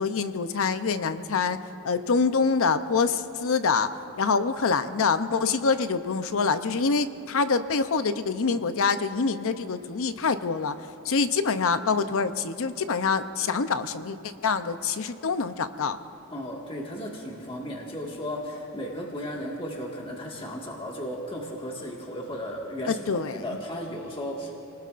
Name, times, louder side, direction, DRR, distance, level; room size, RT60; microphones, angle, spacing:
voice 1, 0.0-1.6 1.8-3.9 4.2-10.7 11.0-14.2 14.4-16.0 22.9-23.4, left 5 dB, 65° left, 11 dB, 0.7 m, -25 dB
voice 2, 16.3-24.5, equal, 25° left, -2 dB, 1.8 m, -35 dB
29.0 x 19.5 x 2.5 m, 2.8 s
head